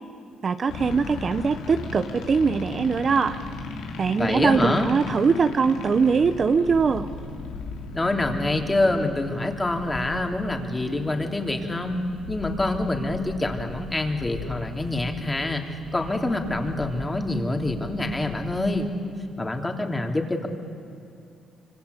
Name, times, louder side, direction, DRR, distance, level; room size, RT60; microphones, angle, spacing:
voice 1, 0.4-3.4 4.0-7.1, right 5 dB, 45° right, 10 dB, 1.0 m, -22 dB
sound 1, 0.7-18.7, left 3 dB, 90° left, 3.2 m, -38 dB
voice 2, 4.2-4.9 7.9-12.0 12.3-15.6 15.9-18.9 19.4-20.5, left 2 dB, 15° left, 4 dB, 3.2 m, -26 dB
25.5 x 25.0 x 8.4 m, 2.6 s
cardioid pair, 90°, 0 cm